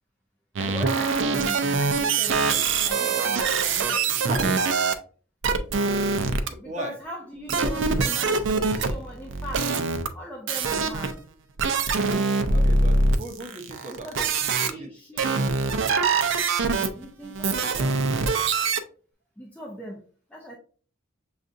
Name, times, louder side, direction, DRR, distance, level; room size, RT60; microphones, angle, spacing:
voice 1, 0.6-4.3 6.6-9.7 10.1-11.2 13.9-14.2 14.6-15.3 16.8-18.1 19.4-20.5, equal, 5° left, -3 dB, 0.5 m, -40 dB
sound 1, 0.6-4.9 5.4-6.5 7.5-10.1 10.5-11.2 11.6-14.7 15.2-18.8, right 4 dB, 60° right, 0.5 m, -24 dB
voice 2, 4.3-4.6 6.2-7.0 12.5-14.3 14.7-14.9, right 2 dB, 35° right, 2 dB, 0.8 m, -35 dB
6.5 x 2.4 x 2.5 m, 0.42 s
head